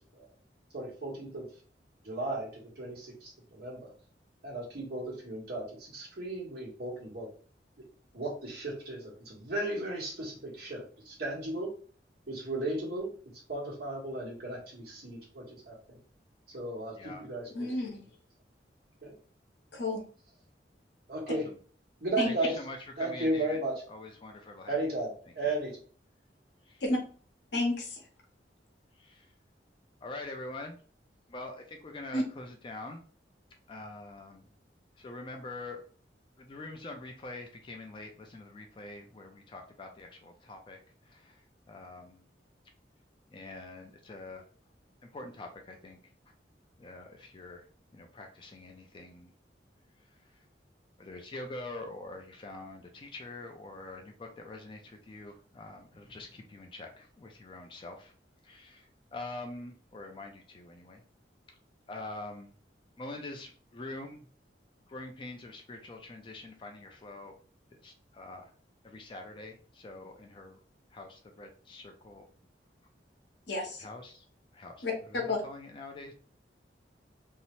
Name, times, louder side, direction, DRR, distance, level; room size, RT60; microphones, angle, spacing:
voice 1, 0.7-1.5 2.0-3.9 4.4-7.3 8.1-11.7 12.3-13.1 13.5-16.0 16.5-17.7 19.0-19.1 21.1-21.5 22.0-22.6 23.0-23.7 24.7-25.7, right 2 dB, 60° right, -3 dB, 1.1 m, -35 dB
voice 2, 16.9-17.2 21.3-21.6 22.2-23.6 23.9-24.8 26.6-26.8 28.9-29.3 30.0-30.8 31.3-33.0 33.7-34.5 35.0-35.8 36.4-42.3 43.3-44.5 45.1-46.0 46.8-47.7 47.9-49.3 50.0-50.4 51.0-58.1 58.4-61.0 61.9-62.5 63.0-64.3 64.9-67.3 67.7-68.5 68.8-70.6 70.9-72.3 73.7-74.2 74.5-76.1, left 2 dB, 30° left, 4 dB, 0.3 m, -45 dB
voice 3, 17.5-18.0 19.7-20.0 22.2-22.3 26.8-27.0 27.5-28.0 32.1-32.2 73.5-73.8 74.8-74.9 75.3-75.4, left 2 dB, 75° left, 1 dB, 0.8 m, -30 dB
2.7 x 2.0 x 2.9 m, 0.42 s
head